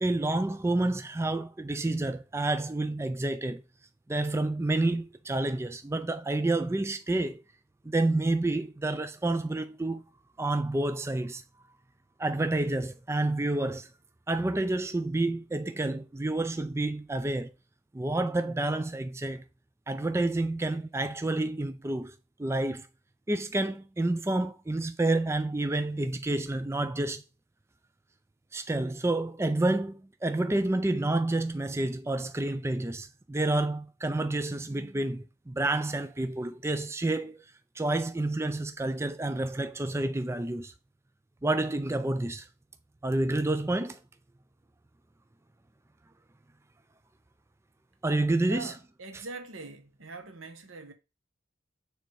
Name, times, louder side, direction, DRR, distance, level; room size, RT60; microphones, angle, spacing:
voice 1, 0.0-3.6 4.1-7.4 7.8-10.0 10.4-11.4 12.2-13.9 14.3-17.5 17.9-19.4 19.9-22.1 22.4-22.9 23.3-27.2 28.5-37.4 37.8-40.7 41.4-42.5 43.0-44.0 48.0-48.7, right 2 dB, 15° right, 0.4 m, -29 dB
voice 2, 48.5-50.9, right 3 dB, 90° right, 1.3 m, -43 dB
6.6 x 3.4 x 4.7 m
head